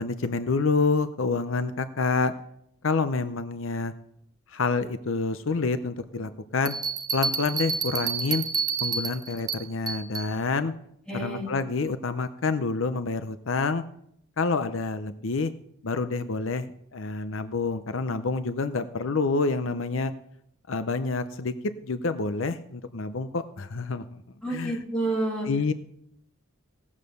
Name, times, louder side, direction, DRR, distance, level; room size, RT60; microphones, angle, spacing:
voice 1, 0.0-2.3 2.8-3.9 4.5-6.7 7.1-8.4 8.8-10.7 11.1-13.8 14.4-15.5 15.8-20.1 20.7-21.5 21.8-24.2 24.5-24.7 25.5-25.7, left 4 dB, 70° left, 11 dB, 0.7 m, -28 dB
sound 1, 6.7-10.3, right 5 dB, 20° right, 0.5 m, -29 dB
voice 2, 11.1-11.5 24.4-25.5, right 2 dB, 5° left, -3 dB, 3.0 m, -29 dB
17.0 x 7.3 x 6.6 m, 0.73 s
head